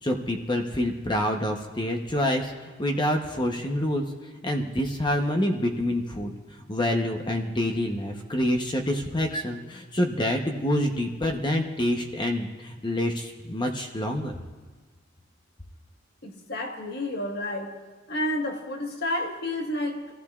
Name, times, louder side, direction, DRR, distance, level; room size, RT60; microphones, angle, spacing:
voice 1, 0.0-6.3 6.7-14.4, left 1 dB, 25° left, 0.8 m, -27 dB
voice 2, 16.2-17.8 18.1-20.1, left 1 dB, 55° left, 1.5 m, -30 dB
24.5 x 15.0 x 2.4 m
head